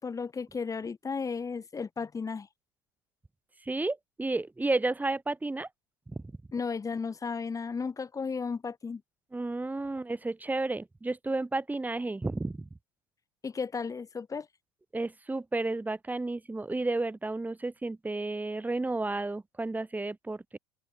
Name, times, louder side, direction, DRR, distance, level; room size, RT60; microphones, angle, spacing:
voice 1, 0.0-2.5 6.5-9.0 13.4-14.5, left 5 dB, 20° left, 3.1 m, -34 dB
voice 2, 3.7-5.7 6.2-6.3 9.3-12.7 14.9-20.6, right 2 dB, 10° right, 4.1 m, -32 dB
open air
hypercardioid pair, 85°, 16 cm